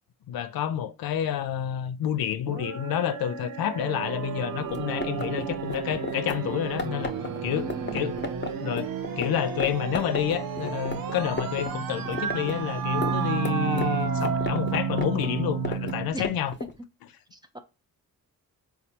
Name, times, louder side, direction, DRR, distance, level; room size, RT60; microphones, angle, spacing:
voice 1, 0.3-7.1 7.4-8.1 8.6-16.5, left 10 dB, 85° left, 0.5 m, -29 dB
sound 1, 2.5-16.1, right 6 dB, 80° right, 0.6 m, -31 dB
sound 2, 4.6-9.3 9.6-9.7 9.9-11.7 12.0-16.7, left 3 dB, 30° left, 0.8 m, -33 dB
voice 2, 7.5-8.1 16.1-16.2 17.3-17.6, right 1 dB, 10° right, 0.7 m, -38 dB
4.2 x 2.3 x 2.8 m
cardioid pair, 60°, 35 cm